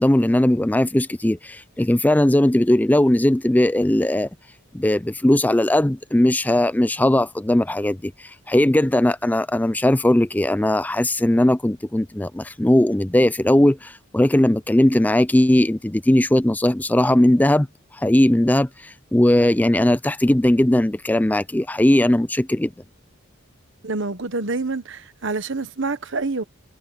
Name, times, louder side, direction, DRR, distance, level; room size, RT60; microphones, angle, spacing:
voice 1, 0.0-4.3 4.7-17.7 18.0-22.7, left 1 dB, 10° left, 0.4 m, -18 dB
voice 2, 23.8-26.4, right 3 dB, 60° right, 1.2 m, -27 dB
head